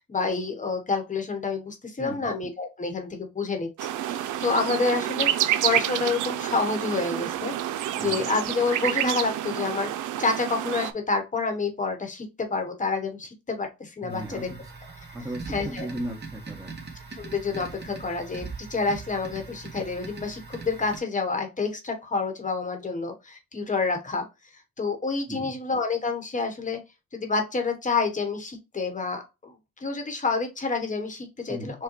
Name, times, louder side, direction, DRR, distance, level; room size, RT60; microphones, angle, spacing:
voice 1, 0.0-14.5 15.5-15.9 17.2-24.3 24.8-26.8 27.1-29.5 29.8-31.8, left 4 dB, 25° left, 4 dB, 1.1 m, -28 dB
voice 2, 2.0-2.3 8.0-8.3 14.0-14.7 15.1-16.7 25.3-25.5 31.5-31.8, right 1 dB, 10° right, 1 dB, 1.0 m, -36 dB
sound 1, 3.8-10.9, right 12 dB, 80° right, 0.5 m, -28 dB
sound 2, 14.1-21.0, right 4 dB, 35° right, 1.3 m, -41 dB
6.4 x 2.2 x 3.0 m, 0.26 s
cardioid pair, 90°, 30 cm